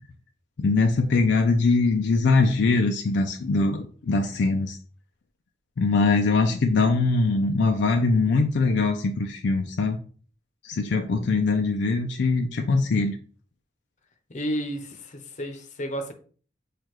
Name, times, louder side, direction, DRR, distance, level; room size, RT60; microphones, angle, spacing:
voice 1, 0.6-4.8 5.8-10.0 10.6-13.2, left 3 dB, 65° left, 0.4 m, -22 dB
voice 2, 14.3-16.1, equal, 40° left, 0.7 m, -32 dB
6.4 x 2.4 x 3.0 m
head